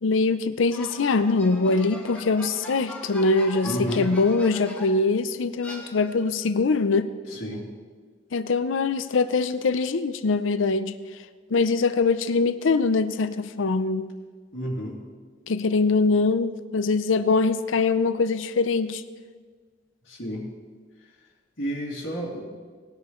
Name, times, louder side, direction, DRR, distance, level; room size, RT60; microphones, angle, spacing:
voice 1, 0.0-7.1 8.3-10.9 11.5-14.1 15.5-19.0, left 3 dB, 85° left, 12 dB, 0.6 m, -23 dB
sound 1, 0.7-5.1 5.6-6.4, left 1 dB, 5° left, 1.5 m, -41 dB
voice 2, 3.6-4.1 7.3-7.6 14.5-15.0 20.0-20.5 21.6-22.4, equal, 65° left, -6 dB, 2.7 m, -31 dB
19.0 x 10.5 x 3.2 m, 1.5 s
head